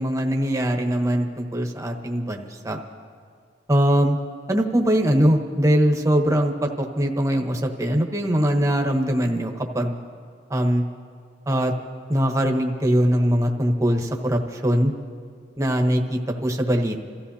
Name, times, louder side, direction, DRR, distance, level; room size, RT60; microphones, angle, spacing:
voice 1, 0.0-2.8 3.7-4.2 4.5-9.9 10.5-10.8 11.5-11.7 12.1-14.9 15.6-17.0, equal, 20° right, 3 dB, 1.2 m, -21 dB
28.5 x 14.0 x 2.8 m, 2.1 s
head